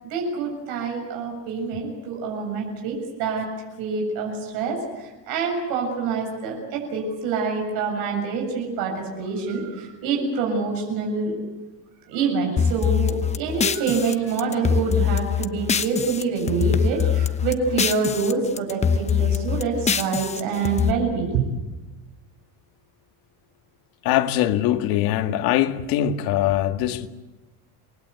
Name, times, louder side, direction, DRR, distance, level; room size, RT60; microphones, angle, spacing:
voice 1, 0.0-3.5 3.8-11.3 12.1-21.4, right 5 dB, 70° right, 7.4 m, -26 dB
sound 1, 12.6-16.2 16.5-18.3 18.6-20.9, left 7 dB, 20° left, 1.0 m, -23 dB
voice 2, 24.0-27.1, left 12 dB, 70° left, 2.0 m, -22 dB
28.5 x 21.0 x 8.4 m
cardioid pair, 155°, 37 cm